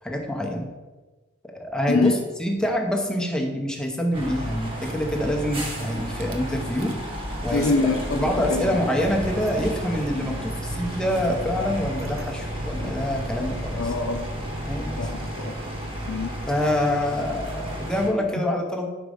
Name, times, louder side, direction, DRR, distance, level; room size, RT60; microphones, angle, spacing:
voice 1, 0.0-0.7 1.6-2.1 2.4-7.0 7.4-7.7 8.1-13.9 14.7-15.0 16.5-18.9, left 1 dB, 5° left, 0 dB, 0.8 m, -26 dB
sound 1, 4.1-18.1, right 1 dB, 25° right, 1.2 m, -32 dB
Rattle / Car / Engine starting, 6.2-6.4 6.8-7.1 7.4-15.1, equal, 70° right, 0.6 m, -42 dB
voice 2, 7.5-8.8 12.8-12.9 13.7-14.2 15.0-15.6 16.1-16.3, left 3 dB, 85° left, 1 dB, 0.6 m, -24 dB
5.2 x 4.6 x 4.9 m, 1.3 s
head